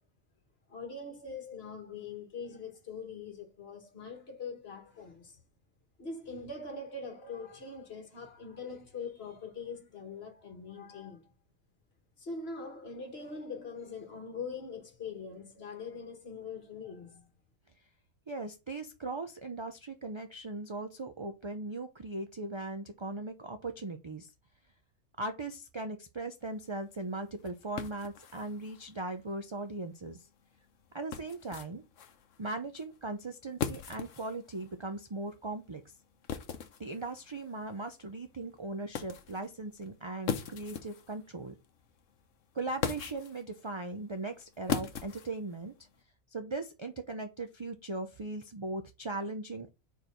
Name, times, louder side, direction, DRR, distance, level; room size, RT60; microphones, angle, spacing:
voice 1, 0.7-5.4 6.0-11.3 12.2-17.3, left 4 dB, 50° left, 1.6 m, -42 dB
voice 2, 18.3-24.3 25.2-30.3 30.9-31.8 32.4-35.9 36.8-41.5 42.5-45.7 46.3-49.7, right 2 dB, 35° right, 0.4 m, -39 dB
sound 1, 26.4-46.0, left 7 dB, 65° left, 1.1 m, -42 dB
4.7 x 4.6 x 5.1 m
omnidirectional pair, 1.4 m